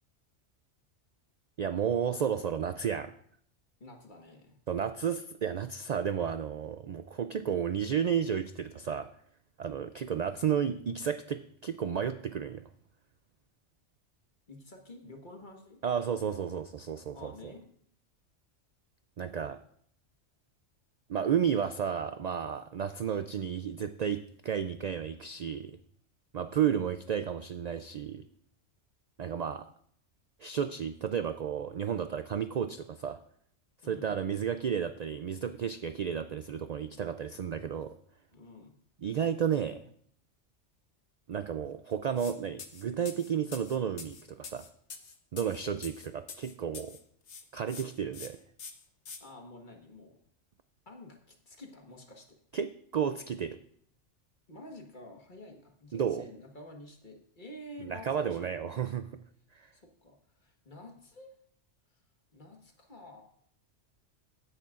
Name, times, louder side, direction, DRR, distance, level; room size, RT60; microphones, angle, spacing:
voice 1, 1.6-3.1 4.7-9.1 9.6-12.6 15.8-17.5 19.2-19.6 21.1-25.8 26.3-28.2 29.2-29.7 30.4-33.2 33.9-37.9 39.0-39.8 41.3-44.7 45.3-47.0 47.5-48.4 52.5-53.6 55.9-56.3 57.8-59.0 59.5-59.7, right 8 dB, 75° right, 10 dB, 0.3 m, -32 dB
voice 2, 3.8-4.6 14.5-15.8 17.1-17.6 33.8-34.1 38.3-38.8 49.2-50.2 50.8-52.4 54.5-58.8 59.7-61.3 62.3-63.2, left 1 dB, 40° left, 2 dB, 1.6 m, -49 dB
sound 1, 42.2-42.3 42.6-47.0 47.3-47.8 48.1-48.3 48.6-49.2, left 5 dB, 70° left, 1.4 m, -45 dB
15.5 x 11.0 x 2.5 m, 0.65 s
omnidirectional pair, 1.2 m